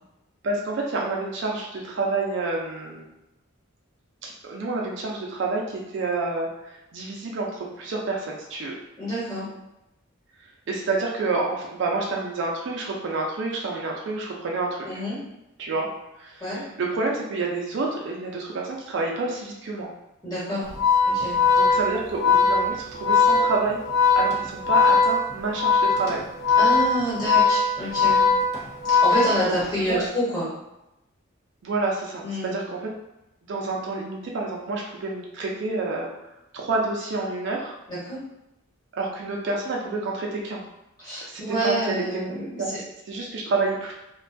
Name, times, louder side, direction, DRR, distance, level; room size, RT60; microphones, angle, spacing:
voice 1, 0.4-3.0 4.2-8.8 10.7-15.0 15.6-15.9 16.2-19.9 21.6-23.8 24.2-26.2 29.4-30.0 31.6-32.9 33.5-36.1 36.5-37.7 38.9-40.6 41.3-43.9, right 3 dB, 55° right, -1 dB, 0.4 m, -29 dB
voice 2, 9.0-9.5 14.8-15.2 16.4-16.6 20.2-20.7 21.1-21.3 26.6-28.2 28.9-30.5 32.2-32.5 37.9-38.2 41.0-42.6, equal, 20° left, -9 dB, 1.1 m, -27 dB
Organ, 20.7-29.8, left 4 dB, 50° left, 0.5 m, -20 dB
2.5 x 2.2 x 2.5 m, 0.91 s
head